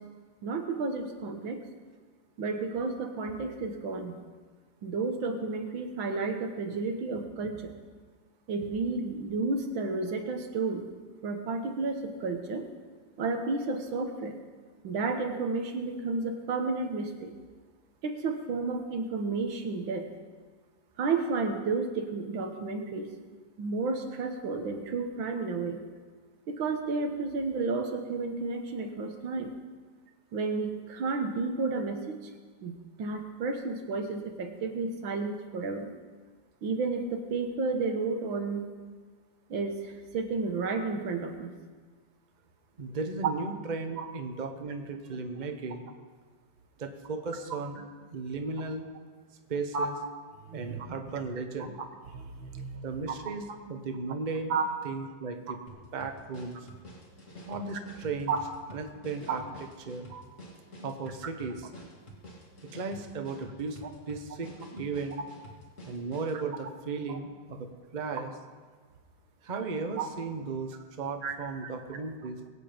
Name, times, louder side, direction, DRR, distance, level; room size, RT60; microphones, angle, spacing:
voice 1, 0.4-1.6 2.4-4.2 4.8-7.8 8.5-10.9 11.2-12.7 13.2-14.3 14.8-17.3 18.0-20.1 21.0-23.1 23.6-25.8 26.5-29.5 30.3-32.2 32.6-35.9 36.6-38.7 39.5-41.5 44.0-44.1 49.7-49.9 50.5-50.9 52.1-52.9 54.5-54.7 58.3-58.4 59.3-59.4 60.1-60.2 67.1-67.2 70.0-70.1 71.2-71.4 71.6-71.7, right 4 dB, 90° right, 5 dB, 2.1 m, -32 dB
voice 2, 42.8-45.9 46.8-47.8 48.1-48.9 49.5-50.0 50.5-51.8 52.8-55.6 55.9-56.6 57.5-58.3 58.7-59.4 59.9-60.1 60.8-61.7 62.7-63.8 64.1-65.2 65.9-68.3 69.4-72.4, right 4 dB, 30° right, 5 dB, 1.0 m, -36 dB
sound 1, 55.7-66.4, equal, 40° left, 2.5 m, -49 dB
21.5 x 8.4 x 5.2 m, 1.5 s
omnidirectional pair, 2.1 m